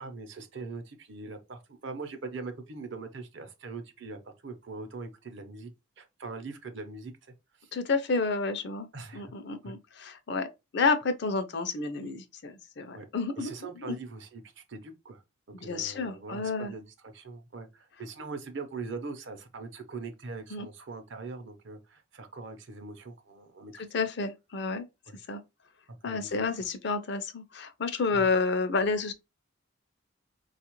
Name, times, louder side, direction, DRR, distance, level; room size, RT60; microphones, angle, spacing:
voice 1, 0.0-5.7 6.0-7.1 7.6-7.7 8.9-9.3 9.6-9.7 12.9-13.1 13.4-15.2 15.6-23.8 25.1-25.2 26.0-26.4 28.1-28.3, right 3 dB, 60° right, 0.7 m, -42 dB
voice 2, 7.7-8.9 9.1-10.5 10.7-13.5 13.8-14.0 15.5-16.7 20.5-20.7 23.8-24.8 25.3-25.4 26.0-29.1, left 4 dB, 55° left, 0.5 m, -30 dB
4.1 x 2.4 x 2.9 m
head